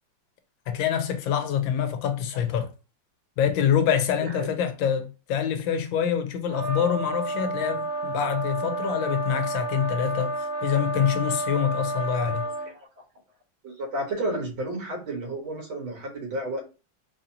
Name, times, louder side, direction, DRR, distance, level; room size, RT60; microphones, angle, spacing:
voice 1, 0.7-2.7 3.4-10.3 10.6-12.5, left 8 dB, 80° left, 1.4 m, -25 dB
voice 2, 4.2-4.6 12.4-12.9 13.6-16.6, right 1 dB, 85° right, 1.9 m, -32 dB
sound 1, 6.5-12.7, right 2 dB, 40° right, 0.8 m, -30 dB
4.0 x 2.7 x 2.6 m
omnidirectional pair, 2.1 m